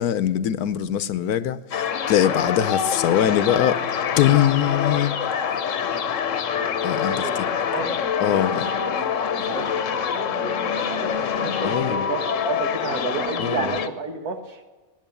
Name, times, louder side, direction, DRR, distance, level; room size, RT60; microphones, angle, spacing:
voice 1, 0.0-3.8 4.2-5.2 6.8-7.5 8.2-8.7 11.6-12.1 13.4-13.7, left 11 dB, 80° left, 1.2 m, -22 dB
sound 1, 1.7-13.9, left 7 dB, 60° left, 1.1 m, -25 dB
voice 2, 6.5-8.0 9.3-14.6, right 5 dB, 75° right, 1.9 m, -32 dB
18.0 x 9.9 x 6.9 m
omnidirectional pair, 1.6 m